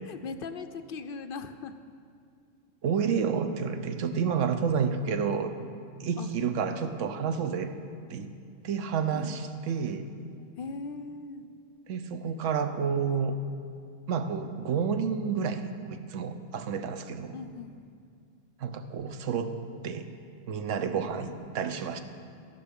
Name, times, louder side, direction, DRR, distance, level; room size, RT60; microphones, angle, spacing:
voice 1, 0.1-1.8 6.2-6.3 9.1-9.4 10.6-11.5 17.3-17.9, left 4 dB, 65° left, 10 dB, 0.6 m, -39 dB
voice 2, 2.8-5.5 6.0-7.7 8.1-8.3 8.6-10.1 11.9-13.4 14.1-17.3 18.6-19.5 19.8-20.1 20.5-22.0, right 6 dB, 75° right, 9 dB, 1.1 m, -30 dB
13.0 x 11.0 x 5.2 m, 2.3 s
omnidirectional pair, 1.3 m